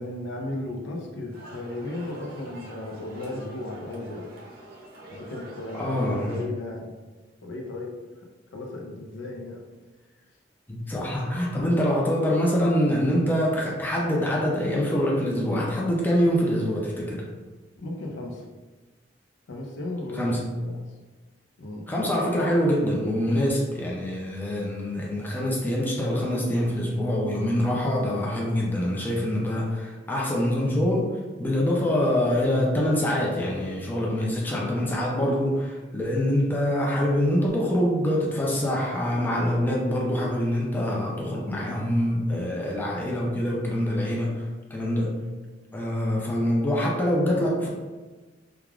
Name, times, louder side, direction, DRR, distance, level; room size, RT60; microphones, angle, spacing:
voice 1, 0.0-4.3 5.1-6.9 7.4-7.9 8.5-9.6 17.8-18.5 19.5-20.8 21.6-21.9 34.6-34.9, left 2 dB, 80° left, 0 dB, 0.5 m, -35 dB
sound 1, 1.3-6.4, right 1 dB, 55° right, 0.6 m, -45 dB
voice 2, 5.7-6.4 10.7-17.2 20.1-20.5 21.9-45.2 45.7-47.7, equal, 10° left, -3 dB, 0.4 m, -25 dB
3.3 x 2.3 x 2.3 m, 1.2 s
head